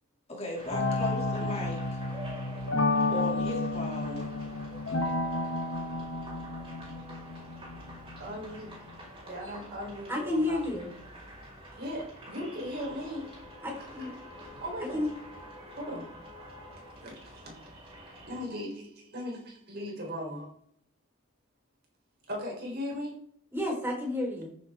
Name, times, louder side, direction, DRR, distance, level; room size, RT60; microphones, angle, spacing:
voice 1, 0.3-1.8 3.1-4.3, left 1 dB, 30° left, -2 dB, 2.7 m, -36 dB
sound 1, 0.5-18.4, equal, 25° right, 3.8 m, -47 dB
sound 2, 0.7-8.9, left 2 dB, 60° left, 1.3 m, -31 dB
voice 2, 8.2-8.9 9.3-10.6 11.8-13.4 13.8-14.3 14.6-15.0 15.7-16.1 17.0-20.5 22.3-23.2, equal, 45° right, 0 dB, 3.9 m, -38 dB
voice 3, 10.1-10.9 13.6-14.1 14.9-15.1 23.5-24.5, left 1 dB, 10° right, -2 dB, 4.2 m, -31 dB
14.0 x 7.9 x 3.6 m, 0.66 s
head